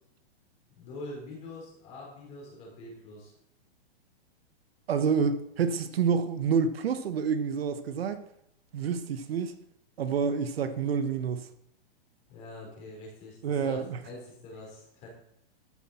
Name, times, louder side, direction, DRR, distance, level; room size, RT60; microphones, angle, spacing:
voice 1, 0.8-3.3 12.3-15.1, left 2 dB, 20° left, 4.4 m, -44 dB
voice 2, 4.9-8.2 8.7-9.6 10.0-11.5 13.4-14.0, right 6 dB, 70° right, 1.2 m, -28 dB
13.5 x 10.5 x 4.3 m
hypercardioid pair, 180°, 31 cm